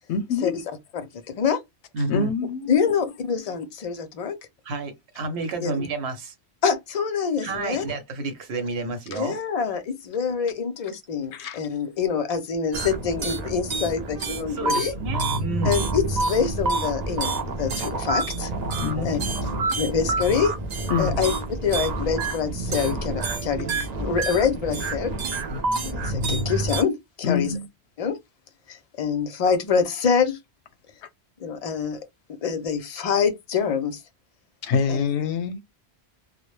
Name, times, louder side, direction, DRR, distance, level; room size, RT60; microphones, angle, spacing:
voice 1, 0.1-0.6 2.1-2.9 9.1-9.2 11.3-11.6 18.8-19.4 20.9-21.2 27.2-27.7 34.6-35.6, left 6 dB, 85° left, 0.8 m, -26 dB
voice 2, 0.9-1.6 2.7-4.3 5.6-5.7 6.6-7.8 9.1-14.9 15.6-18.5 19.0-19.2 19.8-20.5 21.0-21.3 21.6-25.1 25.8-27.5 28.0-28.2 28.7-30.4 31.4-32.0 32.4-34.0 34.9-35.0, left 6 dB, 50° left, 0.5 m, -25 dB
voice 3, 1.9-2.3 4.6-6.3 7.4-9.4 14.5-15.7 18.9-19.1 25.5-25.8, right 3 dB, 80° right, 1.0 m, -30 dB
sound 1, 12.7-26.8, right 3 dB, 50° right, 0.6 m, -28 dB
2.1 x 2.0 x 3.1 m
omnidirectional pair, 1.1 m